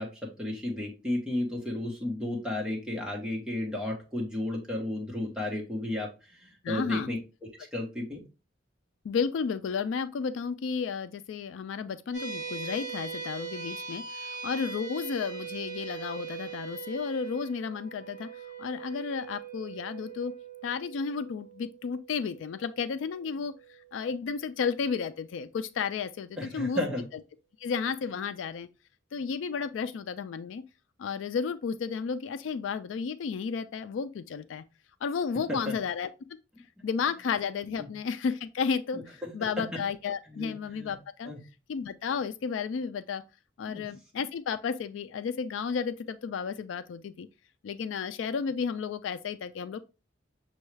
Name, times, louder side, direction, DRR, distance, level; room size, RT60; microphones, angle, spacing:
voice 1, 0.0-7.2 7.7-8.2 26.4-27.0 35.5-35.7 37.8-37.9 38.9-39.8 40.3-40.9 41.2-41.4 43.7-43.8, left 1 dB, 5° right, 1.0 m, -33 dB
voice 2, 6.6-7.1 9.0-18.3 18.6-20.3 20.6-23.5 23.9-26.8 27.6-28.7 29.1-30.6 31.0-34.6 35.0-36.1 36.8-41.3 41.7-43.2 43.6-47.3 47.6-49.8, left 6 dB, 80° left, 0.3 m, -32 dB
sound 1, 12.1-24.8, right 6 dB, 40° left, 2.6 m, -41 dB
6.2 x 2.3 x 3.2 m
head